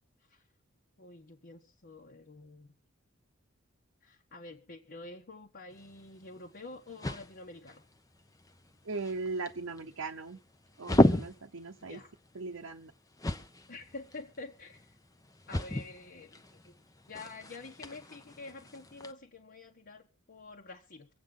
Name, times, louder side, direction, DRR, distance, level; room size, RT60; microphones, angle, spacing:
voice 1, 1.0-2.7 4.0-7.8 11.8-12.1 13.7-15.0 15.5-16.8 17.1-21.1, left 3 dB, 50° left, 1 dB, 1.3 m, -48 dB
sound 1, 5.7-19.1, left 1 dB, 15° left, 0.8 m, -35 dB
voice 2, 8.8-10.4 10.8-12.0 12.3-12.9, right 3 dB, 70° right, 2 dB, 0.9 m, -38 dB
25.0 x 8.4 x 3.8 m, 0.35 s
head